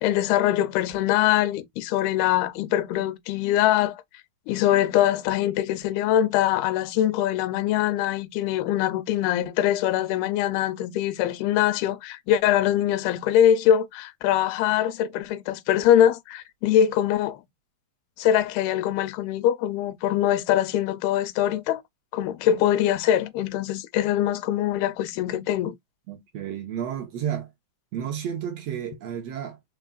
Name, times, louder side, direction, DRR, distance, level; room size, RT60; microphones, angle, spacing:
voice 1, 0.0-4.0 4.5-17.4 18.2-21.8 22.1-25.7, left 11 dB, 85° left, 2.7 m, -23 dB
voice 2, 26.1-27.5 27.9-29.8, right 9 dB, 90° right, 1.4 m, -32 dB
5.2 x 4.5 x 2.3 m
omnidirectional pair, 4.4 m